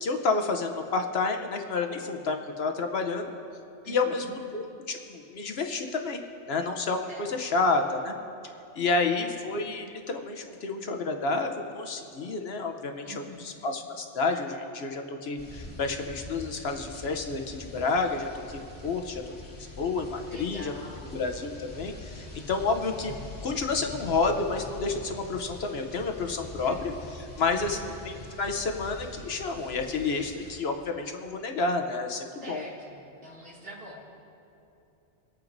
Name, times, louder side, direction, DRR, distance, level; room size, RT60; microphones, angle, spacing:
voice 1, 0.0-3.3 3.9-4.3 4.5-6.2 6.5-8.1 8.7-19.2 19.8-20.7 21.1-23.1 23.4-27.8 28.0-32.6, left 3 dB, 65° left, 5 dB, 1.0 m, -30 dB
voice 2, 3.8-4.4 7.1-7.3 8.8-9.1 13.0-13.5 20.2-21.1 22.1-22.5 26.6-26.8 27.4-27.9 32.4-33.0 33.2-34.0, equal, 50° right, -6 dB, 2.5 m, -45 dB
sound 1, 15.4-30.6, left 2 dB, 35° left, 2.0 m, -44 dB
25.0 x 8.8 x 2.6 m, 2.7 s
omnidirectional pair, 1.2 m